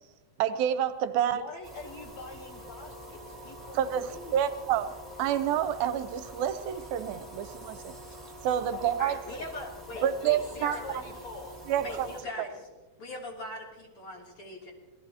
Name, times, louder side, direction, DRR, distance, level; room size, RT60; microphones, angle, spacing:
voice 1, 0.4-1.4 3.7-4.9 5.2-7.9 8.4-9.2 10.0-10.8 11.7-12.1, right 10 dB, 80° right, 10 dB, 2.4 m, -28 dB
voice 2, 1.3-4.6 7.9-8.0 8.7-8.9 9.3-9.5 9.9-11.6 11.9-12.1 12.5-12.6, left 4 dB, 65° left, 2 dB, 1.9 m, -44 dB
sound 1, 1.6-12.2, right 1 dB, 15° right, 2.6 m, -46 dB
voice 3, 9.0-11.1 11.8-12.6 13.0-14.7, left 2 dB, 40° left, -2 dB, 3.5 m, -41 dB
26.5 x 18.0 x 2.9 m, 1.2 s
omnidirectional pair, 4.3 m